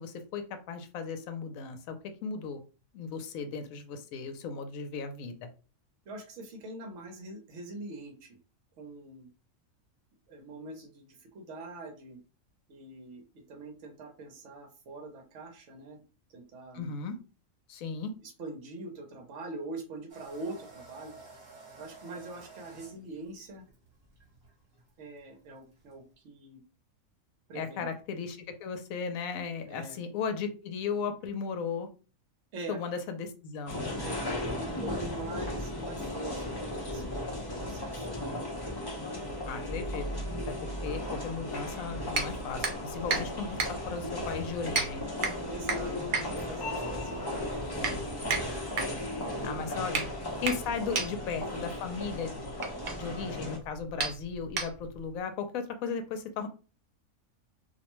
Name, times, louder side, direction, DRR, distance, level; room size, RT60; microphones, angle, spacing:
voice 1, 0.0-2.0 2.2-2.6 2.9-5.5 16.7-17.2 17.7-18.1 27.5-31.9 32.7-33.8 39.5-45.0 49.4-50.0 50.4-52.5 52.9-56.5, left 5 dB, 75° left, 7 dB, 1.0 m, -36 dB
voice 2, 6.1-8.4 8.8-9.3 10.3-12.2 12.7-16.0 16.3-16.9 18.2-21.1 21.8-23.7 25.0-26.6 27.5-28.0 29.6-30.0 32.5-32.8 34.0-37.2 37.6-38.1 45.5-47.9 49.7-49.9 50.9-51.0, right 2 dB, 65° right, 3 dB, 1.0 m, -43 dB
sound 1, 20.1-26.1, right 4 dB, 40° right, 1.2 m, -52 dB
sound 2, 33.7-53.6, left 1 dB, 35° left, 0.3 m, -36 dB
sound 3, 42.1-55.1, right 4 dB, 85° right, 0.4 m, -35 dB
2.6 x 2.1 x 2.9 m, 0.34 s
omnidirectional pair, 1.5 m